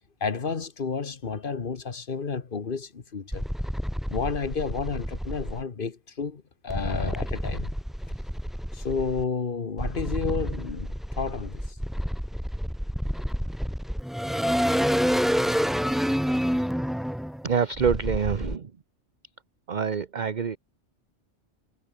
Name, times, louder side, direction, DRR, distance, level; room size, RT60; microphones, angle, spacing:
voice 1, 0.2-3.4 4.1-7.7 8.7-11.8, left 5 dB, 50° left, 1.4 m, -31 dB
sound 1, 3.3-5.6 6.7-9.2 9.8-18.6, equal, ahead, 0.4 m, -28 dB
voice 2, 17.4-18.7 19.7-20.6, right 6 dB, 45° right, 1.0 m, -26 dB
omnidirectional pair, 1.2 m